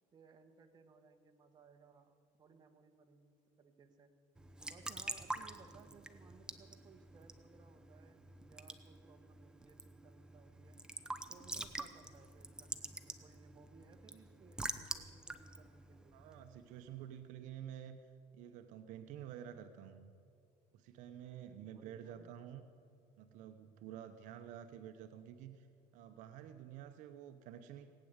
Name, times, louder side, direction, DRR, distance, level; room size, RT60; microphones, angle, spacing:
voice 1, 0.1-4.1 4.7-10.8 11.3-16.2 21.6-22.3, right 5 dB, 30° right, 5 dB, 1.4 m, -62 dB
Raindrop / Drip / Trickle dribble, 4.4-16.8, right 2 dB, 5° right, 0.8 m, -47 dB
voice 2, 16.1-18.0 18.3-20.1 20.7-22.7 23.2-25.7 25.9-27.9, right 10 dB, 70° right, 8 dB, 0.8 m, -50 dB
18.5 x 9.2 x 8.0 m, 2.3 s
cardioid pair, 125°, 13 cm